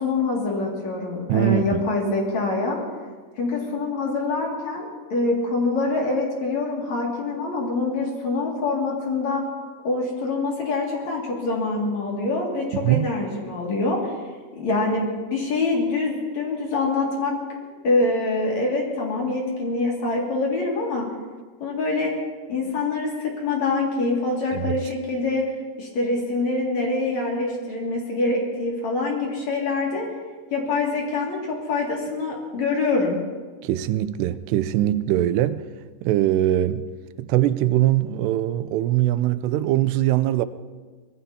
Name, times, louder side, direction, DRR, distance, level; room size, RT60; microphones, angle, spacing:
voice 1, 0.0-2.8 3.4-9.4 9.8-14.1 14.5-17.3 17.8-21.1 21.6-22.1 22.5-25.4 25.8-30.0 30.5-33.2, left 3 dB, 50° left, 3.1 m, -25 dB
voice 2, 1.3-1.9 12.7-13.1 24.5-24.8 33.6-35.6 36.0-36.9 37.2-40.5, right 13 dB, 85° right, 2.7 m, -22 dB
24.5 x 20.5 x 2.8 m
omnidirectional pair, 4.8 m